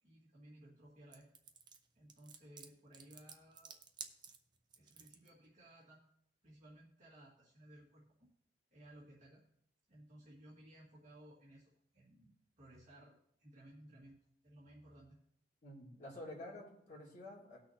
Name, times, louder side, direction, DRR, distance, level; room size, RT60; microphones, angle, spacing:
voice 1, 0.0-1.3 1.9-3.8 4.8-6.0 6.4-8.0 8.7-9.4 9.9-15.2, right 1 dB, 40° right, -7 dB, 1.9 m, -59 dB
sound 1, 1.1-5.3, right 6 dB, 25° right, 0.6 m, -53 dB
voice 2, 15.6-17.6, left 1 dB, 45° left, -5 dB, 2.9 m, -50 dB
18.5 x 6.3 x 2.8 m, 0.75 s
head